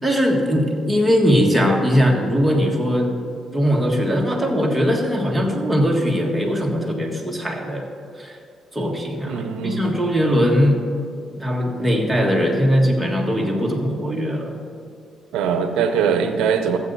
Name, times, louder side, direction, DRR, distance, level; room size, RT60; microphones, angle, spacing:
voice 1, 0.0-3.2 3.5-7.9 8.2-8.4 8.7-10.8 11.4-14.6, equal, 5° right, -1 dB, 1.7 m, -20 dB
voice 2, 9.3-9.8 15.3-16.8, right 7 dB, 90° right, 7 dB, 0.7 m, -21 dB
14.0 x 7.9 x 4.0 m, 2.3 s
cardioid pair, 90°, 0 cm